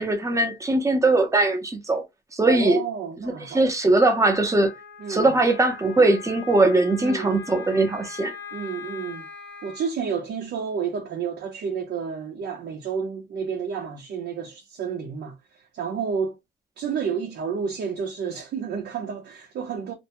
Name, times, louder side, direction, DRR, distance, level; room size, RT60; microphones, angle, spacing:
voice 1, 0.0-2.0 2.3-2.8 3.2-4.7 5.1-8.4, right 2 dB, 15° right, 0.6 m, -20 dB
voice 2, 2.5-3.7 5.0-5.4 7.0-7.4 8.5-9.3 9.6-16.4 16.8-19.9, right 6 dB, 80° right, 0.6 m, -30 dB
Wind instrument woodwind instrument, 4.2-9.9, left 6 dB, 80° left, 0.9 m, -41 dB
2.5 x 2.2 x 2.9 m
wide cardioid pair, 170°, 18 cm